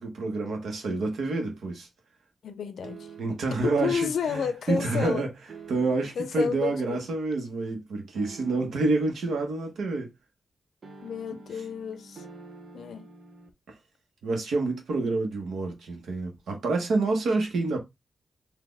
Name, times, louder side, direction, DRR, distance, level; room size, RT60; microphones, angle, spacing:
voice 1, 0.0-1.9 3.2-5.3 5.7-10.1 14.2-17.8, right 3 dB, 85° right, 1.3 m, -28 dB
voice 2, 2.4-3.1 3.6-5.3 6.2-7.0 11.0-12.3 12.7-13.1, left 6 dB, 85° left, 0.5 m, -31 dB
sound 1, 2.8-3.6 5.5-6.3 8.2-9.0 10.8-13.5, right 4 dB, 55° right, 0.9 m, -47 dB
4.2 x 2.7 x 3.4 m
cardioid pair, 80°, 0 cm